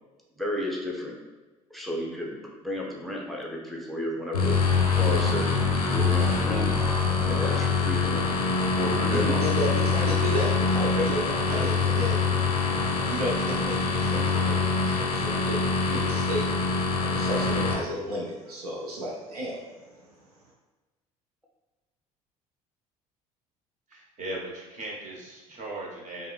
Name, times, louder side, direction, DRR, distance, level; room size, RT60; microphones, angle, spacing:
voice 1, 0.4-1.1 1.7-5.5 5.9-6.7 7.2-8.2 8.7-9.4 9.7-10.0 17.8-18.2, left 1 dB, ahead, -2 dB, 0.8 m, -33 dB
sound 1, 4.3-17.7, left 4 dB, 90° left, 0.5 m, -24 dB
voice 2, 9.1-12.2 13.1-16.5 17.0-20.0, equal, 85° right, -3 dB, 0.6 m, -32 dB
voice 3, 23.9-26.3, right 1 dB, 40° right, -3 dB, 1.2 m, -38 dB
5.4 x 2.1 x 2.3 m, 1.2 s
figure-of-eight pair, 60°, 19 cm